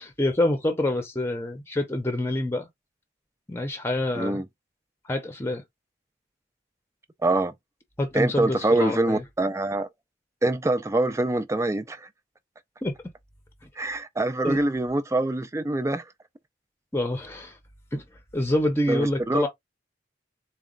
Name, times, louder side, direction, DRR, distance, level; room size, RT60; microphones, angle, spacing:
voice 1, 0.0-2.7 3.5-4.4 5.1-5.6 8.0-9.2 12.8-12.9 14.4-14.6 16.9-17.6 17.9-18.0 18.3-19.5, left 1 dB, 15° left, 0.7 m, -26 dB
voice 2, 4.1-4.5 7.2-7.5 8.1-9.9 10.4-12.1 13.8-16.0 18.9-19.5, right 2 dB, 15° right, 0.4 m, -25 dB
4.1 x 2.3 x 3.7 m
head